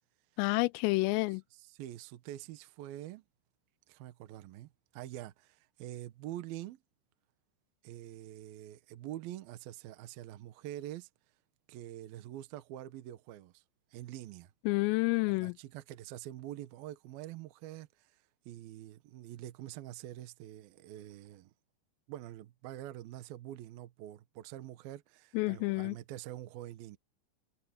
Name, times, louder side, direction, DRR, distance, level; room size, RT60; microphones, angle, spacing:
voice 1, 0.4-1.4 14.7-15.6 25.3-26.0, left 25 dB, 85° left, 3.1 m, -29 dB
voice 2, 1.5-3.2 3.9-6.8 7.8-11.1 11.7-13.6 13.9-14.5 15.3-18.1 18.5-21.5 22.1-27.0, right 13 dB, 80° right, 2.1 m, -45 dB
omnidirectional pair, 6.0 m